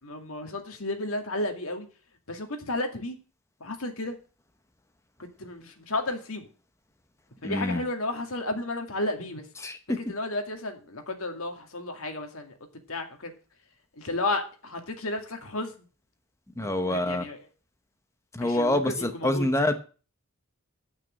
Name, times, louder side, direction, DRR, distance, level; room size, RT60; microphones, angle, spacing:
voice 1, 0.0-1.9 2.3-3.2 3.6-4.2 5.2-6.5 7.4-9.5 10.0-12.6 12.9-13.3 14.0-15.9 16.6-17.4 18.4-19.5, left 2 dB, 75° left, 5 dB, 2.1 m, -33 dB
voice 2, 7.4-7.8 9.6-9.8 16.6-17.2 18.3-19.7, left 1 dB, 15° left, 8 dB, 0.9 m, -26 dB
8.7 x 6.3 x 7.5 m, 0.36 s
head